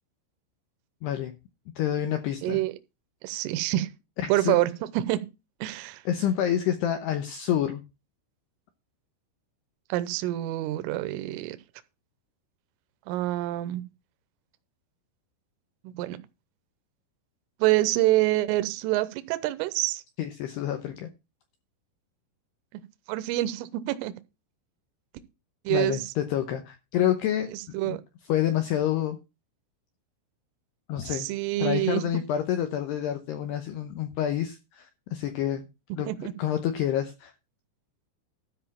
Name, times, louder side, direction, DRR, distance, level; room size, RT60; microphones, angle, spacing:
voice 1, 1.0-1.3 1.8-2.6 4.2-4.6 6.1-7.8 20.2-21.1 25.7-27.5 27.8-28.0 28.3-29.2 30.9-31.3 31.6-35.7 36.0-36.1 36.4-37.3, left 10 dB, 80° left, 2.4 m, -28 dB
voice 2, 2.4-2.7 3.2-3.9 4.3-5.2 5.6-6.0 9.9-11.6 13.1-13.8 15.8-16.2 17.6-20.0 23.1-24.1 25.7-26.0 27.7-28.0 31.1-32.0 36.1-36.3, right 16 dB, 80° right, 3.2 m, -26 dB
13.0 x 4.4 x 7.2 m
omnidirectional pair, 5.9 m